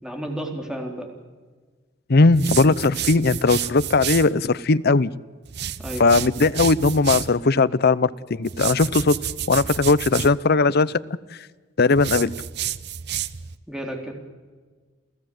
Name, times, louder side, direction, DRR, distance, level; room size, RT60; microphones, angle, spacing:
voice 1, 0.0-1.1 2.4-2.6 5.8-6.5 13.7-14.1, right 1 dB, 5° right, 1 dB, 3.7 m, -33 dB
voice 2, 2.1-5.1 6.0-9.2 9.5-11.0 11.8-12.3, left 3 dB, 55° left, 16 dB, 0.7 m, -18 dB
sound 1, 2.3-4.3 5.5-7.4 8.5-10.3 12.0-13.6, right 10 dB, 60° right, 0.8 m, -30 dB
29.0 x 15.0 x 7.8 m, 1.4 s
head